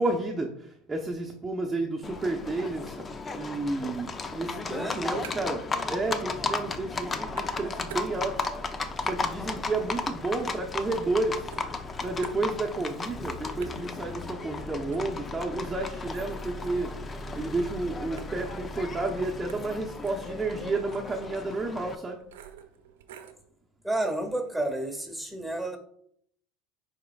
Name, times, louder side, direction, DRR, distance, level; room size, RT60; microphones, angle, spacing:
voice 1, 0.0-3.1 3.3-8.3 8.6-8.7 9.0-11.5 12.0-22.2, right 2 dB, 15° right, -2 dB, 1.0 m, -31 dB
Livestock farm animals working animals, 2.0-21.9, left 3 dB, 25° left, 0.6 m, -35 dB
voice 2, 4.7-5.2 13.2-13.7 23.8-25.8, right 1 dB, ahead, 3 dB, 1.9 m, -31 dB
sound 1, 4.7-5.7 6.0-6.7 7.0-8.6 9.0-11.2 11.5-12.9 13.2-13.3 13.6-23.5, right 9 dB, 85° right, 0.8 m, -50 dB
11.0 x 4.4 x 2.4 m, 0.67 s
hypercardioid pair, 90°, 0 cm